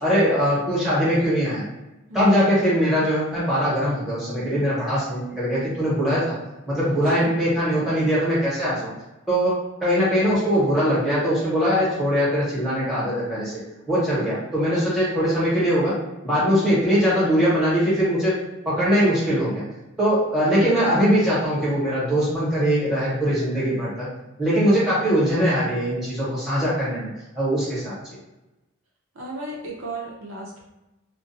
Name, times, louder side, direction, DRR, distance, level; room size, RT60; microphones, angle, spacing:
voice 1, 0.0-1.6 2.1-6.3 6.7-8.9 9.3-13.6 13.9-15.9 16.2-18.3 18.6-19.6 20.0-24.1 24.4-27.1 27.3-28.0, equal, ahead, -10 dB, 1.0 m, -21 dB
voice 2, 2.1-2.4 7.0-7.4 29.1-30.6, right 2 dB, 65° right, -3 dB, 0.5 m, -35 dB
2.3 x 2.2 x 2.5 m, 1.0 s
head